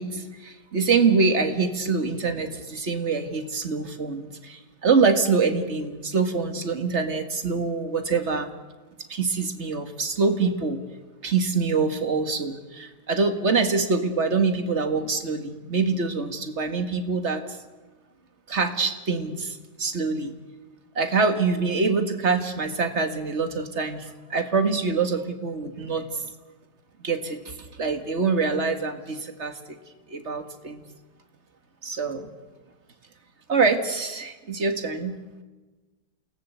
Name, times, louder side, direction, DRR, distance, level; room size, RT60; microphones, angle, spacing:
voice 1, 0.0-8.5 9.1-10.8 11.2-17.4 18.5-20.3 21.0-26.3 27.0-29.8 30.1-30.8 31.8-32.3 33.5-35.2, right 4 dB, 40° right, 7 dB, 2.1 m, -25 dB
28.5 x 18.5 x 8.2 m, 1.3 s
omnidirectional pair, 1.9 m